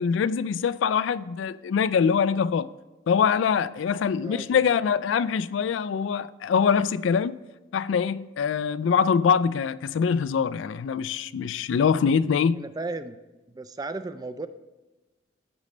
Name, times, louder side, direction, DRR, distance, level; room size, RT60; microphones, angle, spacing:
voice 1, 0.0-2.7 3.1-7.4 7.7-12.6, left 6 dB, 80° left, 0.3 m, -24 dB
voice 2, 4.1-4.6 12.5-13.2 13.5-14.5, right 3 dB, 20° right, 0.3 m, -35 dB
13.0 x 5.2 x 3.3 m
head